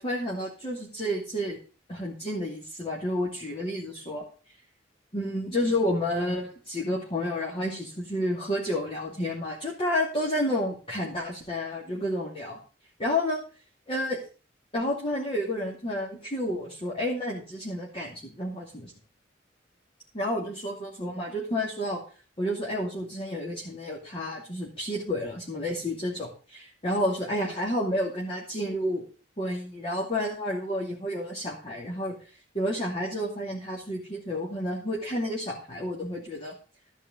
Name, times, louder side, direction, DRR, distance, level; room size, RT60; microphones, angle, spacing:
voice 1, 0.0-1.6 1.9-4.2 5.1-12.6 13.0-13.4 13.9-14.2 14.7-18.9 20.1-22.0 22.4-29.0 29.4-32.2 32.5-36.5, left 1 dB, 30° left, -4 dB, 2.8 m, -30 dB
13.5 x 5.4 x 7.8 m, 0.37 s
head